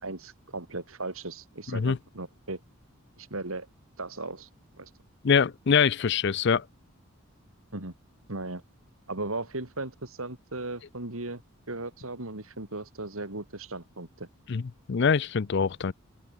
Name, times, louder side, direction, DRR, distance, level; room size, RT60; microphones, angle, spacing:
voice 1, 0.0-2.6 3.2-3.7 4.0-4.5 4.8-4.9 7.7-7.9 8.3-8.6 9.1-11.4 11.7-14.3, right 2 dB, 75° right, 3.1 m, -37 dB
voice 2, 5.2-6.6 14.5-14.6 14.9-15.9, left 6 dB, 50° left, 0.5 m, -24 dB
head